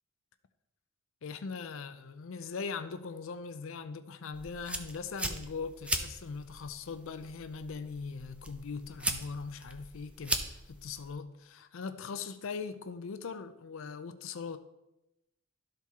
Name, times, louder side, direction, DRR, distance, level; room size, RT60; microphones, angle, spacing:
voice 1, 1.2-14.6, left 5 dB, 65° left, 0.5 m, -40 dB
sound 1, 4.3-11.1, right 1 dB, 5° right, 0.5 m, -39 dB
12.0 x 4.3 x 3.6 m
head